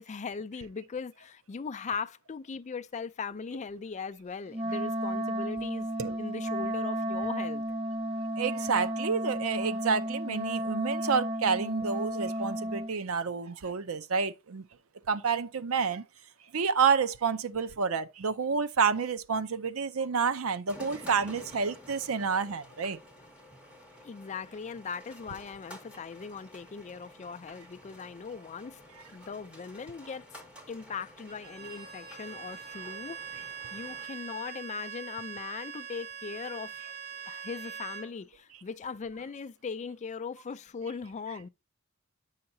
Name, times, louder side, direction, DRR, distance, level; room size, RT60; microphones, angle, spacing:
voice 1, 0.0-5.9 6.2-7.6 24.0-28.8 29.1-30.3 30.7-36.8 37.2-41.5, left 5 dB, 35° left, 0.4 m, -39 dB
Wind instrument woodwind instrument, 4.5-12.9, right 1 dB, 30° right, 0.7 m, -33 dB
voice 2, 8.4-14.6 15.1-16.0 16.5-23.0 32.9-33.0, right 5 dB, 70° right, 0.6 m, -29 dB
sound 1, 20.7-34.1, left 1 dB, 5° right, 2.0 m, -51 dB
Bowed string instrument, 31.3-38.1, right 7 dB, 50° right, 3.1 m, -42 dB
8.7 x 5.7 x 2.7 m
head